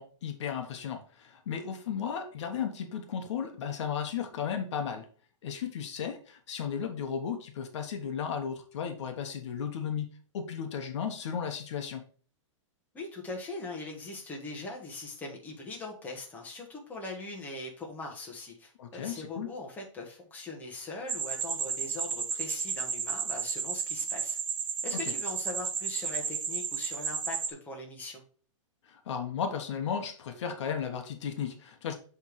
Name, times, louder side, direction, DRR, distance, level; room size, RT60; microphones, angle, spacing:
voice 1, 0.0-5.1 5.4-10.1 10.3-12.0 18.8-19.5 24.9-25.1 28.9-32.0, left 7 dB, 60° left, 5 dB, 1.2 m, -35 dB
voice 2, 12.9-24.4 24.8-28.2, left 2 dB, 10° left, -1 dB, 1.5 m, -41 dB
sound 1, 21.1-27.5, right 6 dB, 75° right, 1.1 m, -33 dB
7.3 x 3.6 x 4.6 m, 0.42 s
hypercardioid pair, 155°, 17 cm